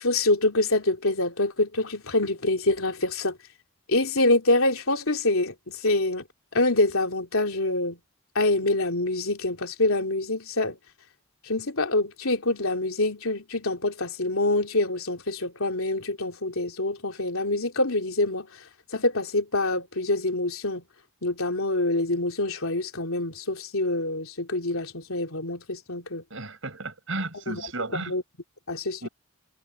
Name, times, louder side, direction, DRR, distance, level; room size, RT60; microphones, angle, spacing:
voice 1, 0.0-3.4 3.9-5.5 5.8-6.2 6.5-8.0 8.3-10.8 11.5-18.5 18.9-20.8 21.2-26.2 27.5-27.6 28.1-28.2 28.7-29.1, left 2 dB, 80° left, 3.1 m, -25 dB
voice 2, 26.3-28.1 29.0-29.1, right 2 dB, 65° right, 5.2 m, -33 dB
head